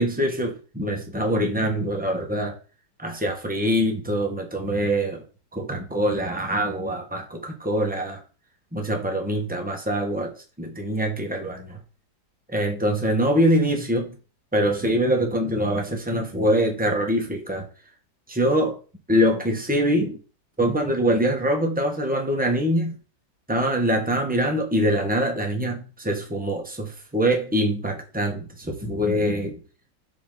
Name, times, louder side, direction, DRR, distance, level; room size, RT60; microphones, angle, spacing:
voice 1, 0.0-2.6 3.0-5.2 5.5-8.2 8.7-11.8 12.5-14.1 14.5-17.7 18.3-18.8 19.1-20.2 20.6-22.9 23.5-29.6, equal, 5° right, 1.0 m, -24 dB
7.0 x 4.0 x 4.0 m
omnidirectional pair, 2.1 m